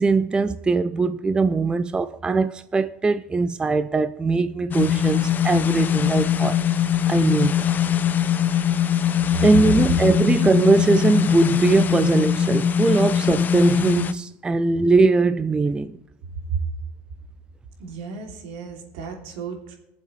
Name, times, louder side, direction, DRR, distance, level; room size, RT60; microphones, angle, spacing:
voice 1, 0.0-6.6 7.1-7.6 9.4-16.0, right 3 dB, 15° right, 0.4 m, -20 dB
sound 1, 4.7-14.1, left 9 dB, 30° left, 0.6 m, -21 dB
voice 2, 9.7-10.1 17.8-19.8, right 4 dB, 75° right, 2.9 m, -32 dB
21.0 x 7.4 x 3.2 m
supercardioid pair, 110°, 6 cm